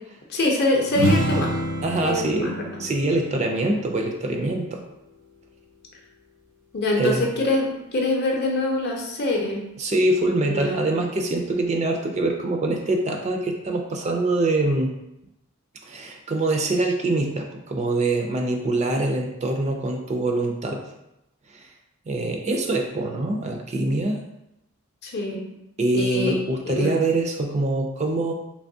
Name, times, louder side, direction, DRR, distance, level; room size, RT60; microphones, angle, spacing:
voice 1, 0.3-1.5 2.0-2.8 6.7-9.6 10.4-10.8 25.0-25.4 25.9-26.9, left 2 dB, 45° left, 0 dB, 0.6 m, -24 dB
sound 1, 0.9-4.6, right 2 dB, 85° right, 0.7 m, -28 dB
voice 2, 1.8-4.8 7.0-7.3 9.8-14.9 15.9-20.8 21.5-21.7 22.1-24.2 25.8-28.3, right 2 dB, 30° right, 2 dB, 0.3 m, -24 dB
3.3 x 2.9 x 2.6 m, 0.89 s
head